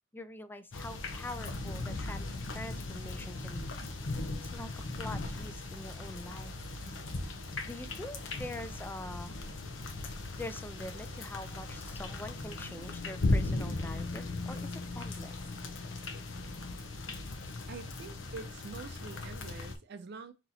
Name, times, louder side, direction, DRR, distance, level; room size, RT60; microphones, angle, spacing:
voice 1, 0.1-2.3 2.5-4.1 4.4-6.5 7.7-9.3 10.4-15.3, left 1 dB, 10° left, 0.3 m, -44 dB
sound 1, 0.7-19.8, left 2 dB, 70° left, 0.8 m, -37 dB
voice 2, 17.7-20.3, right 4 dB, 55° right, 0.5 m, -46 dB
4.1 x 2.9 x 3.9 m
head